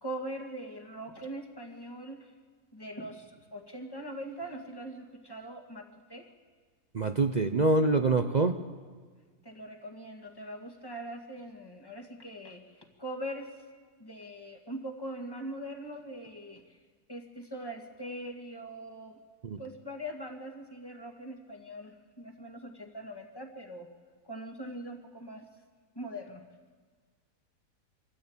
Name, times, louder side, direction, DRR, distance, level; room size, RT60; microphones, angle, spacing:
voice 1, 0.0-2.3 2.7-6.3 9.4-13.6 14.0-16.8 17.1-19.2 19.6-23.9 24.2-25.4 26.0-26.4, right 1 dB, 15° left, 3 dB, 1.9 m, -42 dB
voice 2, 6.9-8.6 19.4-19.6, right 3 dB, 45° right, 7 dB, 0.6 m, -25 dB
25.0 x 14.0 x 8.8 m, 1.5 s
omnidirectional pair, 1.6 m